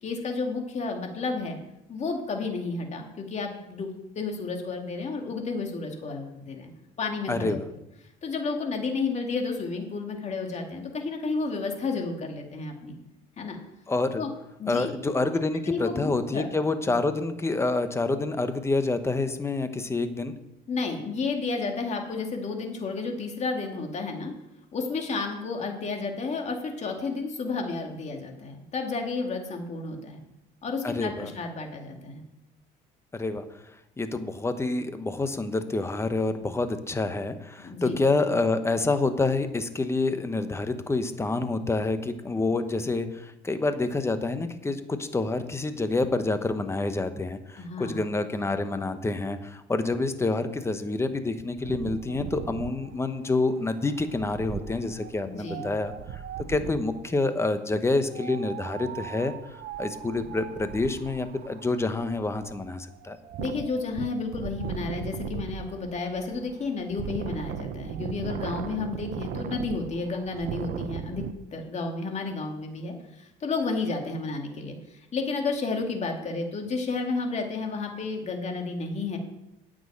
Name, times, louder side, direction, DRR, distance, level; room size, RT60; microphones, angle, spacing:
voice 1, 0.0-1.6 1.9-6.7 7.0-7.6 8.2-13.0 13.4-13.6 14.2-14.3 14.6-14.9 15.7-16.5 16.9-17.0 20.7-24.3 24.7-30.2 30.6-32.2 37.6-38.0 47.6-48.0 55.3-55.7 63.4-71.2 71.5-79.2, left 4 dB, 35° left, 3 dB, 2.2 m, -31 dB
voice 2, 7.3-7.7 13.9-14.2 14.7-20.3 30.8-31.3 33.1-33.6 34.0-56.2 56.5-63.2, left 3 dB, 15° left, 9 dB, 1.0 m, -28 dB
Wind, 51.6-57.0 58.0-71.3, right 9 dB, 55° right, 0.8 m, -38 dB
9.2 x 6.3 x 8.5 m, 0.88 s
cardioid pair, 110°, 19 cm